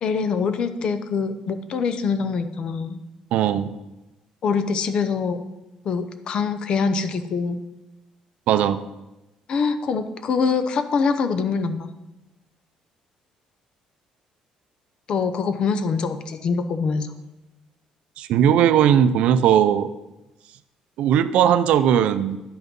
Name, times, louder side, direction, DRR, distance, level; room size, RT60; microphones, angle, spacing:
voice 1, 0.0-3.0 4.4-5.4 5.8-7.6 9.5-11.9 15.1-17.1, left 5 dB, 45° left, 10 dB, 0.7 m, -24 dB
voice 2, 3.3-3.7 8.5-8.8 18.2-19.9 21.0-22.4, right 9 dB, 70° right, 12 dB, 0.5 m, -18 dB
10.5 x 6.0 x 5.4 m, 1.0 s
cardioid pair, 155°, 2 cm